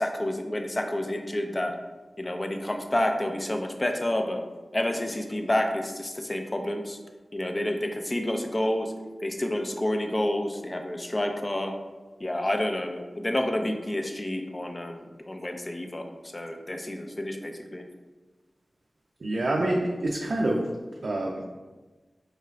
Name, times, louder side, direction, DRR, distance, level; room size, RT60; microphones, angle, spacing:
voice 1, 0.0-1.7 2.2-4.4 4.7-7.0 7.3-8.9 9.2-11.7 12.2-16.0 16.3-17.8, left 1 dB, 25° left, 4 dB, 0.4 m, -29 dB
voice 2, 19.2-20.7 21.0-21.4, right 1 dB, 75° right, -2 dB, 0.4 m, -26 dB
4.6 x 2.4 x 3.2 m, 1.3 s
wide cardioid pair, 80°, 0 cm